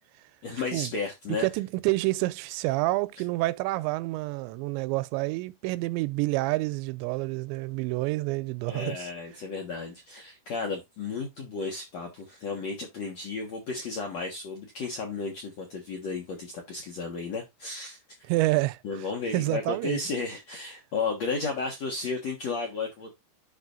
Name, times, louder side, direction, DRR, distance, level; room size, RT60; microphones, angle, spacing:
voice 1, 0.4-1.5 8.7-18.3 18.8-23.1, left 4 dB, 65° left, 1.6 m, -33 dB
voice 2, 1.4-9.1 18.3-18.8 19.3-20.0, right 20 dB, 85° right, 2.8 m, -28 dB
11.0 x 4.3 x 2.5 m
omnidirectional pair, 5.2 m